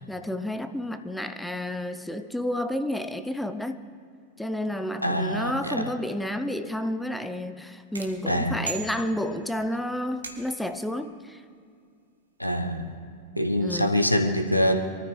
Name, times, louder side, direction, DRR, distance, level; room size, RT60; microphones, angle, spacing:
voice 1, 0.0-3.8 4.4-11.4 13.6-14.0, left 1 dB, 5° left, 9 dB, 0.7 m, -31 dB
voice 2, 5.0-5.8 8.3-8.6 12.4-12.9 13.3-14.7, equal, 90° left, 5 dB, 1.0 m, -24 dB
sound 1, 7.9-9.6 10.2-10.8, right 4 dB, 75° right, 1.4 m, -39 dB
23.0 x 13.5 x 3.3 m, 2.2 s
figure-of-eight pair, 90°, 0 cm